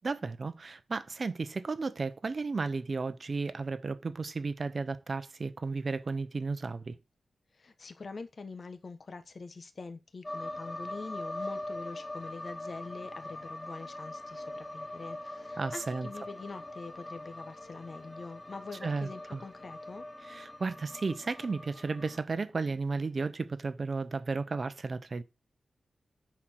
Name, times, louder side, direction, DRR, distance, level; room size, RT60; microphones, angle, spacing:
voice 1, 0.0-6.9 15.6-16.1 18.8-19.4 20.3-25.2, right 4 dB, 40° right, 0.9 m, -34 dB
voice 2, 7.5-20.0, left 4 dB, 40° left, 1.1 m, -44 dB
sound 1, 10.2-22.2, left 1 dB, 15° left, 1.0 m, -42 dB
10.0 x 4.6 x 6.2 m
wide cardioid pair, 150°, 0 cm